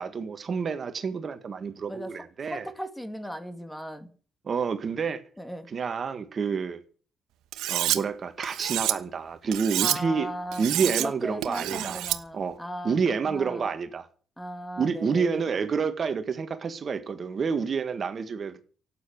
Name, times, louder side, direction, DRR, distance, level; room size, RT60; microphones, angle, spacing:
voice 1, 0.0-2.7 4.4-5.2 5.7-6.8 7.7-10.3 10.6-12.0 12.3-14.1 14.8-18.6, right 5 dB, 45° right, 1.6 m, -29 dB
voice 2, 2.5-4.1 5.4-5.7 9.8-13.6 14.4-15.5, equal, 5° left, 2.3 m, -37 dB
Cutlery silverware, 7.5-8.0 8.4-8.9 9.5-10.0 10.5-11.1 11.4-12.2, right 14 dB, 90° right, 1.2 m, -28 dB
12.0 x 9.1 x 9.4 m
cardioid pair, 90°, 0 cm